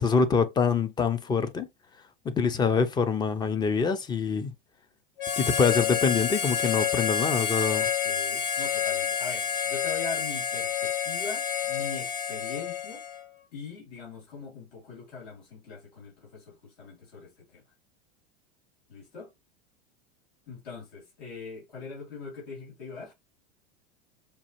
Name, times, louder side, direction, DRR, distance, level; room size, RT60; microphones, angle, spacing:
voice 1, 0.0-1.7 2.2-4.5 5.3-7.9, left 5 dB, 15° left, 0.4 m, -25 dB
voice 2, 2.3-2.8 7.8-13.0 13.5-17.6 18.9-19.3 20.5-23.1, left 4 dB, 75° left, 2.6 m, -41 dB
Harmonica, 5.2-13.2, left 7 dB, 60° left, 0.9 m, -29 dB
5.2 x 2.4 x 2.9 m
supercardioid pair, 125°, 30 cm